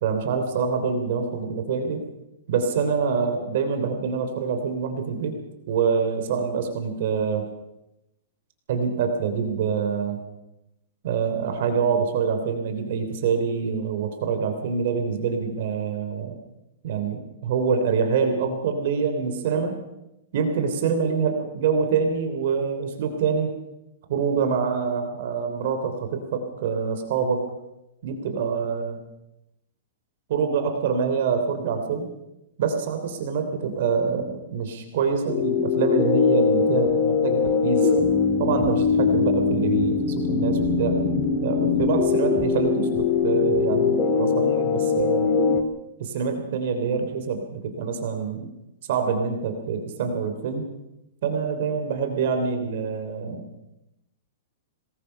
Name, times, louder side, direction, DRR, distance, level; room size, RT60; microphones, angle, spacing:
voice 1, 0.0-2.0 2.5-5.3 5.7-7.4 8.7-10.2 11.0-16.4 16.8-19.8 20.3-23.5 24.1-27.4 28.0-29.0 30.3-32.1 32.6-37.9 38.4-41.0 41.4-45.3 46.0-48.5 48.9-50.7 51.2-53.4, right 6 dB, 50° right, 6 dB, 3.3 m, -25 dB
sound 1, 35.3-45.6, left 5 dB, 20° left, 2.3 m, -22 dB
25.5 x 20.0 x 5.7 m, 0.89 s
hypercardioid pair, 165°, 0 cm